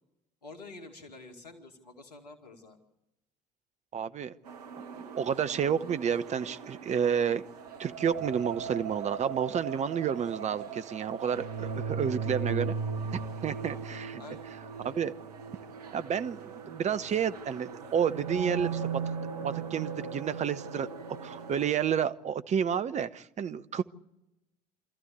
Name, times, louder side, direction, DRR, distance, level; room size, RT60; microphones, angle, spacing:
voice 1, 0.4-2.8 14.2-14.5, left 3 dB, 80° left, 6 dB, 2.3 m, -48 dB
voice 2, 3.9-4.3 4.8-7.4 7.8-12.8 13.1-14.2 14.8-15.1 15.9-18.9 19.4-20.9 21.2-23.8, right 8 dB, 35° right, 12 dB, 1.0 m, -30 dB
sound 1, 4.5-21.7, right 5 dB, 75° right, 1.2 m, -38 dB
26.5 x 14.5 x 8.1 m, 0.92 s
figure-of-eight pair, 60°, 20 cm